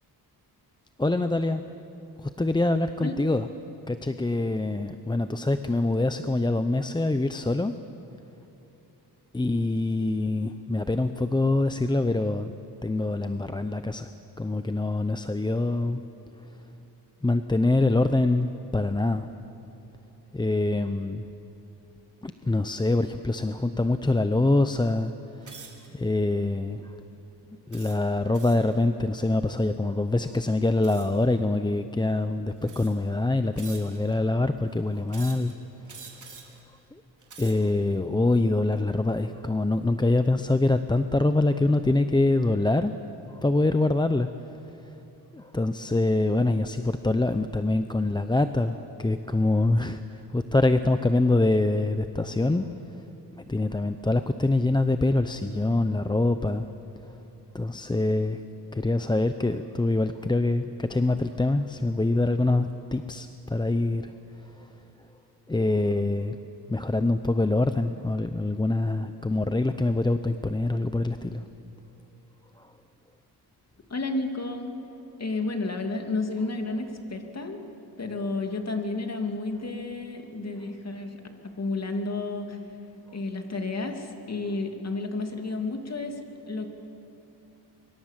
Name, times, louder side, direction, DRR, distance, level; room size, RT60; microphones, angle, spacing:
voice 1, 1.0-1.6 2.2-3.5 3.9-7.7 9.3-12.5 12.8-14.1 14.4-16.0 17.2-19.3 20.3-21.3 22.2-25.1 25.4-25.6 25.9-26.9 27.7-35.5 36.9-37.0 37.4-42.9 43.3-44.3 45.3-50.0 50.3-52.7 53.3-56.7 57.5-58.4 58.7-64.1 64.6-64.7 65.5-66.4 66.7-71.4 72.6-72.7, left 2 dB, 10° left, 9 dB, 0.7 m, -25 dB
sound 1, 25.4-25.9 26.5-26.8 27.7-28.7 30.8-31.2 32.1-32.2 32.6-33.1 33.6-34.2 35.1-35.5 35.9-36.6 37.1-37.7, right 4 dB, 45° right, 4.2 m, -46 dB
voice 2, 73.9-74.7 75.2-77.6 78.0-81.2 81.4-82.6 83.1-86.7, left 3 dB, 40° left, 4 dB, 2.7 m, -31 dB
24.5 x 23.0 x 7.5 m, 2.9 s
cardioid pair, 95°, 41 cm